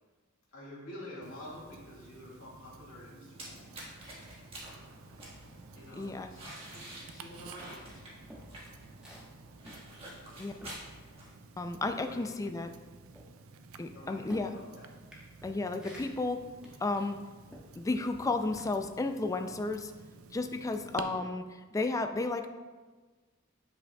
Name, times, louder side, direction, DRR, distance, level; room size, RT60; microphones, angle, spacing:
voice 1, 0.5-3.6 5.3-8.0 11.9-12.3 13.9-14.9, left 1 dB, 85° left, -5 dB, 1.9 m, -49 dB
Tick-tock, 1.2-21.0, right 4 dB, 80° right, 0.4 m, -52 dB
sound 1, 3.3-11.3, right 1 dB, 30° right, 1.5 m, -49 dB
voice 2, 6.0-6.3 10.4-10.5 11.6-12.7 13.8-14.5 15.4-16.4 16.8-17.2 17.8-19.9 20.3-22.5, left 3 dB, 15° left, 6 dB, 0.3 m, -33 dB
sound 2, 8.3-11.5 11.8-19.0 19.4-19.7, equal, 5° right, 1.2 m, -53 dB
8.6 x 5.3 x 2.3 m, 1.4 s
head